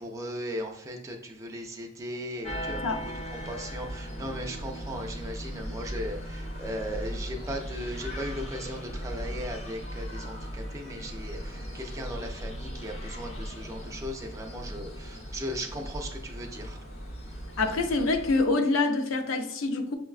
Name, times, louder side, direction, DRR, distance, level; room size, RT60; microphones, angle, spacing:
voice 1, 0.0-16.8, equal, 15° right, 0.4 m, -37 dB
sound 1, 2.4-18.4, equal, 35° left, 0.6 m, -38 dB
voice 2, 17.6-19.9, left 3 dB, 90° left, 0.5 m, -26 dB
6.1 x 2.2 x 2.3 m
head